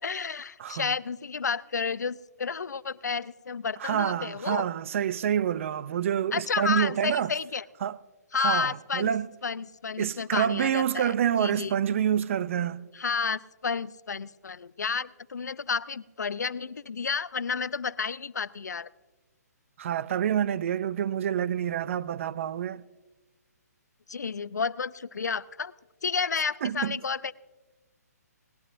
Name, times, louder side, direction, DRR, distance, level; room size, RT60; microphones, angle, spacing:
voice 1, 0.0-4.7 6.3-7.6 8.3-9.1 9.4-11.7 12.9-18.9 24.1-25.7 26.0-27.3, left 5 dB, 85° left, 0.5 m, -31 dB
voice 2, 3.8-7.3 7.8-8.0 8.3-9.3 10.0-12.9 19.8-22.8 26.6-27.0, right 9 dB, 50° right, 0.5 m, -27 dB
20.0 x 16.0 x 2.5 m
hypercardioid pair, 140°, 9 cm